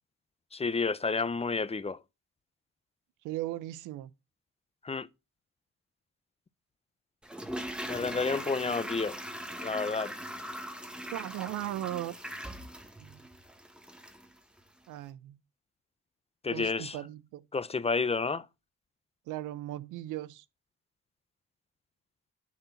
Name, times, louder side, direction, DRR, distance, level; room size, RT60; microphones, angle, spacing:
voice 1, 0.5-2.0 4.8-5.1 7.9-9.2 9.6-10.1 16.4-17.0 17.5-18.4, left 4 dB, 20° left, 0.5 m, -30 dB
voice 2, 3.2-4.1 11.1-12.2 13.0-13.2 14.9-15.4 16.5-17.5 19.3-20.4, right 14 dB, 90° right, 0.7 m, -37 dB
Toilet flush, 7.2-14.3 14.6-14.7, equal, 5° right, 1.4 m, -40 dB
10.0 x 4.2 x 5.5 m
cardioid pair, 90°, 30 cm